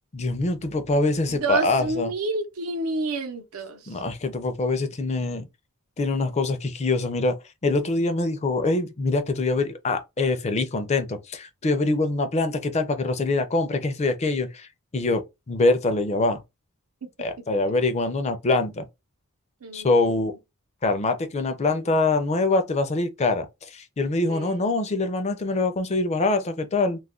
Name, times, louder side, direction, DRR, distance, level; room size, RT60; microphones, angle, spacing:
voice 1, 0.1-2.1 3.9-5.5 6.0-7.4 7.6-16.4 17.2-18.9 19.7-20.3 20.8-27.0, left 2 dB, 30° left, 0.4 m, -24 dB
voice 2, 1.3-4.0 17.4-17.5 19.6-20.4 24.3-24.7, right 3 dB, 80° right, 0.7 m, -30 dB
2.3 x 2.2 x 3.6 m
head